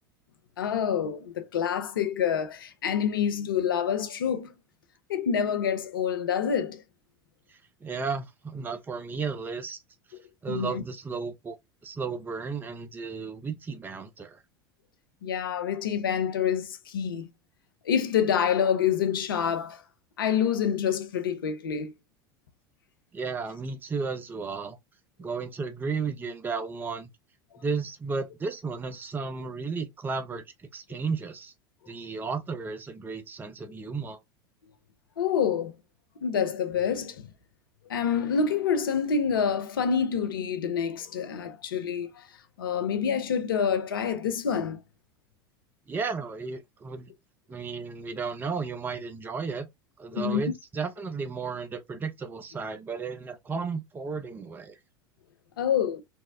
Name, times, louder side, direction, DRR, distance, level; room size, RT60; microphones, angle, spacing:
voice 1, 0.6-4.5 5.1-6.8 10.5-10.8 15.2-17.3 17.9-19.8 20.2-21.9 35.2-35.7 36.2-37.2 37.9-42.2 42.6-44.8 50.1-50.4 55.6-56.0, left 7 dB, 70° left, 0.5 m, -27 dB
voice 2, 7.5-9.8 10.4-11.5 11.8-14.4 23.1-24.8 25.2-27.1 27.6-30.4 30.7-31.5 31.9-34.2 45.9-47.1 47.5-49.7 50.0-54.8, right 5 dB, 15° right, 0.5 m, -34 dB
3.5 x 2.0 x 2.4 m
figure-of-eight pair, 80°, 12 cm